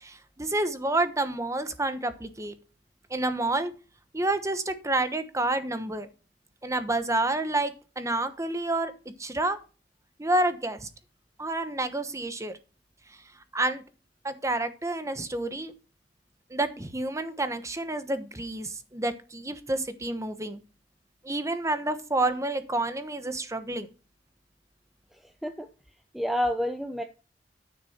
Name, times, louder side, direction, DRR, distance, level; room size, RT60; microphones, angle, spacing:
voice 1, 0.0-2.6 3.1-3.7 4.1-6.1 6.6-9.6 10.2-10.9 11.4-12.5 13.5-13.8 14.2-15.7 16.5-20.6 21.2-23.9, right 2 dB, 15° right, 10 dB, 1.0 m, -29 dB
voice 2, 26.1-27.0, equal, ahead, 6 dB, 0.7 m, -28 dB
9.9 x 6.9 x 4.3 m, 0.34 s
head